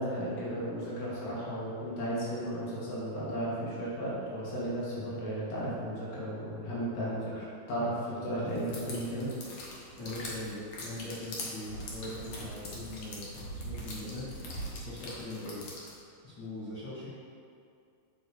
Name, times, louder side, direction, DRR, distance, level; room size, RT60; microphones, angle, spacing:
voice 1, 0.0-9.3, equal, 70° left, -9 dB, 3.4 m, -34 dB
sound 1, 8.6-16.0, equal, 90° left, 1.3 m, -42 dB
voice 2, 10.0-14.3 14.8-15.6 16.2-17.1, left 1 dB, 50° left, -12 dB, 1.3 m, -41 dB
8.8 x 3.3 x 4.1 m, 2.5 s
omnidirectional pair, 4.3 m